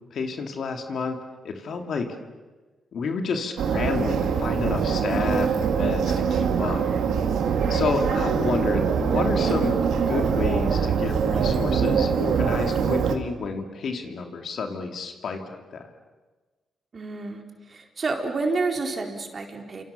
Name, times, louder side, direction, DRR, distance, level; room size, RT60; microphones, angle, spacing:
voice 1, 0.1-1.2 1.4-2.1 2.9-6.8 7.7-15.9, left 5 dB, 65° left, 4 dB, 2.9 m, -30 dB
sound 1, 3.6-13.2, right 6 dB, 80° right, 2.1 m, -23 dB
voice 2, 16.9-17.4 17.7-19.8, right 3 dB, 45° right, 3 dB, 4.1 m, -29 dB
29.0 x 27.0 x 7.0 m, 1.3 s
cardioid pair, 85°, 0 cm